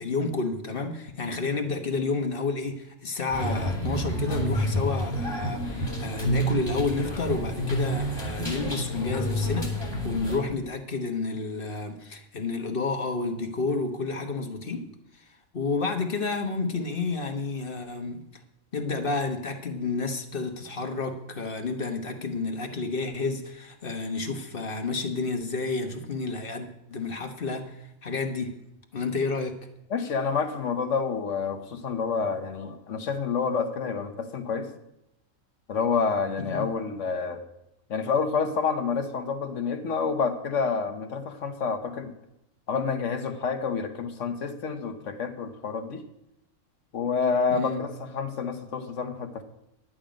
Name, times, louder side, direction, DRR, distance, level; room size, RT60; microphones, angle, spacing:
voice 1, 0.0-14.9 15.1-15.2 15.5-18.2 18.7-28.5 28.9-29.6 36.4-36.7 47.5-47.8, left 3 dB, 45° left, 5 dB, 1.3 m, -30 dB
sound 1, 3.3-10.4, equal, 20° right, 3.3 m, -29 dB
voice 2, 29.9-34.7 35.7-37.4 37.9-42.1 42.7-46.0 46.9-49.4, left 5 dB, 70° left, 6 dB, 1.5 m, -28 dB
11.0 x 9.0 x 5.1 m, 0.84 s
omnidirectional pair, 1.3 m